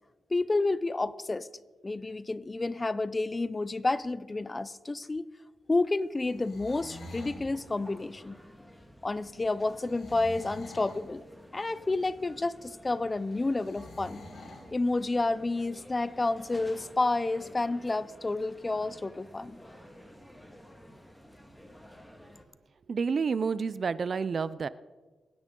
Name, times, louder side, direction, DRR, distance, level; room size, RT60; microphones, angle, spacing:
voice 1, 0.3-1.5 1.8-5.2 5.7-8.4 9.0-11.2 11.5-14.3 14.7-19.6, left 2 dB, 25° left, 17 dB, 0.5 m, -30 dB
sound 1, 6.2-7.4 9.8-11.1 13.6-14.7, left 1 dB, 70° left, 4.5 m, -46 dB
sound 2, 6.7-22.5, equal, 5° left, 1.8 m, -52 dB
voice 2, 22.9-24.7, right 5 dB, 50° right, 16 dB, 0.5 m, -29 dB
23.5 x 10.0 x 3.8 m, 1.3 s
cardioid pair, 85°, 0 cm